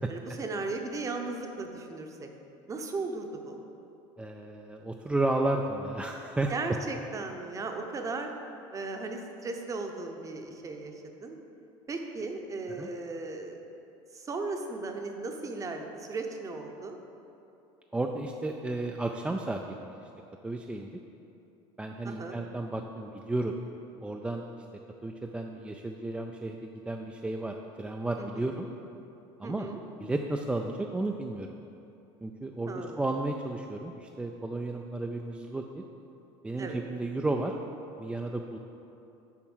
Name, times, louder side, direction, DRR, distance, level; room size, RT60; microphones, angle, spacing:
voice 1, 0.1-2.3 2.7-3.6 6.5-8.3 8.7-11.4 11.9-13.6 14.1-17.0 22.0-22.4 28.2-28.5 29.4-29.8 32.7-33.1 36.6-36.8, right 3 dB, 25° right, 4 dB, 0.8 m, -36 dB
voice 2, 4.2-6.8 12.8-12.9 17.9-20.1 20.4-21.0 21.8-23.5 24.0-24.4 25.0-28.7 29.4-29.7 30.0-31.5 32.2-35.8 36.4-37.6 38.0-38.6, right 2 dB, 10° right, 1 dB, 0.3 m, -33 dB
7.2 x 4.6 x 6.1 m, 2.8 s
supercardioid pair, 115°, 13 cm